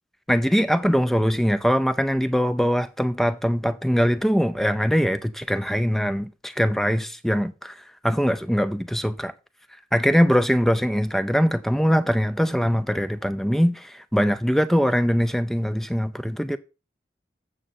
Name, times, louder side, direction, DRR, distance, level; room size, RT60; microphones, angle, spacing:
voice 1, 0.3-7.8 8.0-9.3 9.9-16.6, equal, ahead, 0.4 m, -22 dB
7.9 x 6.3 x 4.1 m
head